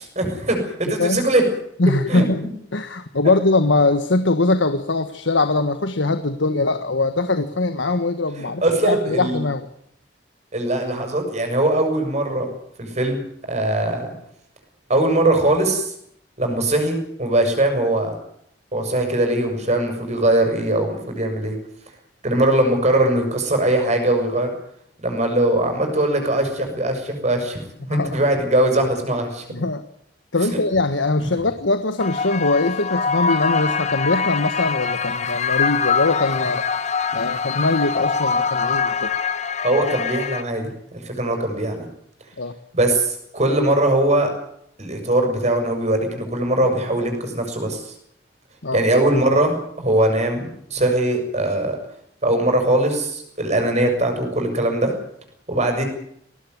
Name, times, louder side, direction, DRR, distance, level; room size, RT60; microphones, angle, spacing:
voice 1, 0.2-1.4 2.1-2.3 3.2-3.3 8.4-9.4 10.5-12.5 12.8-13.2 13.5-14.1 14.9-15.9 16.4-18.2 18.7-21.5 22.2-24.5 25.0-27.6 27.9-29.4 30.5-30.6 31.2-31.3 39.6-41.9 42.7-44.3 44.8-47.9 48.7-51.8 52.2-54.9 55.5-55.9, right 1 dB, 40° right, 4 dB, 7.1 m, -21 dB
voice 2, 1.8-9.7 27.9-28.2 29.5-29.8 30.3-36.6 37.1-39.1 42.4-42.5 48.6-48.8, left 2 dB, 90° left, 10 dB, 1.4 m, -21 dB
sound 1, 32.0-40.4, left 5 dB, 40° left, 1.4 m, -23 dB
20.5 x 18.5 x 9.6 m, 0.71 s
head